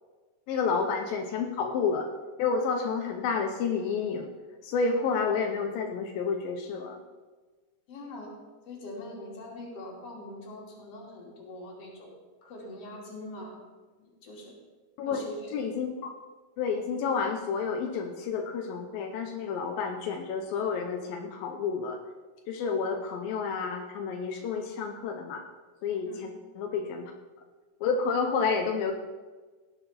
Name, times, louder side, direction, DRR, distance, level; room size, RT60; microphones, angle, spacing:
voice 1, 0.5-2.1 2.4-4.3 4.6-7.0 15.0-15.2 15.5-16.1 16.6-22.0 22.5-25.4 25.8-26.1 26.6-27.1 27.8-28.9, left 5 dB, 85° left, 3 dB, 2.6 m, -30 dB
voice 2, 7.9-8.3 8.7-13.6 14.0-14.6 15.0-15.5 26.0-26.2, left 1 dB, 45° left, -2 dB, 3.4 m, -43 dB
17.5 x 7.6 x 4.2 m, 1.3 s
omnidirectional pair, 4.0 m